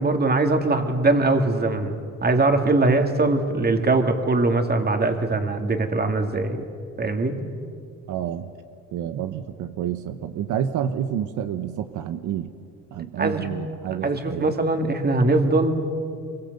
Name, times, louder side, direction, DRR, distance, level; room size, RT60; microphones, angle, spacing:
voice 1, 0.0-1.9 2.2-6.6 7.0-7.4 13.2-13.5 14.0-15.8, right 2 dB, 30° right, 5 dB, 2.7 m, -21 dB
voice 2, 8.1-8.5 8.9-12.5 12.9-14.5, right 9 dB, 85° right, 9 dB, 1.0 m, -29 dB
24.5 x 23.0 x 8.1 m, 2.3 s
cardioid pair, 90°, 30 cm